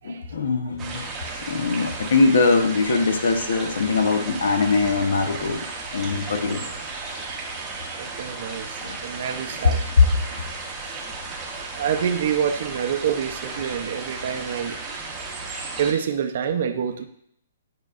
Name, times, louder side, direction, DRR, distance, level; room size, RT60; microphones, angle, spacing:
voice 1, 0.0-1.0 1.5-5.6 5.9-6.6 10.0-10.4, left 4 dB, 75° left, 6 dB, 1.0 m, -21 dB
sound 1, 0.8-15.9, right 3 dB, 10° right, 0.8 m, -34 dB
voice 2, 8.0-9.8 11.7-14.8 15.8-17.0, right 8 dB, 45° right, 6 dB, 0.6 m, -27 dB
9.2 x 5.2 x 2.5 m, 0.70 s
hypercardioid pair, 170°, 0 cm